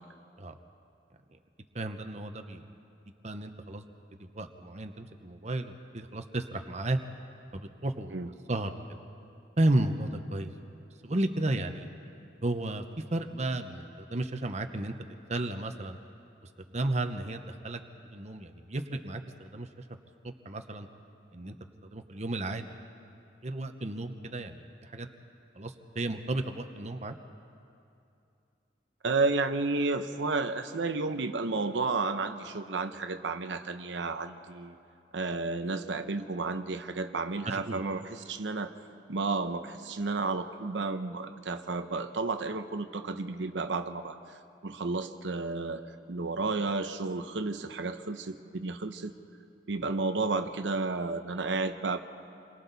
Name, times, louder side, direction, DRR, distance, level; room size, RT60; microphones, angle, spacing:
voice 1, 1.7-2.7 3.2-3.8 4.3-7.0 7.5-8.2 8.5-9.0 9.6-10.5 11.0-11.9 12.4-14.9 15.3-16.0 16.7-19.7 20.2-20.9 21.3-21.5 21.9-22.8 23.4-25.1 25.6-27.2 37.4-37.8, right 1 dB, 40° right, 6 dB, 0.9 m, -33 dB
voice 2, 29.0-34.8 35.1-38.7 39.1-44.4 44.6-49.1 49.7-52.0, right 3 dB, 90° right, 8 dB, 0.9 m, -32 dB
28.5 x 22.5 x 4.1 m, 2.6 s
head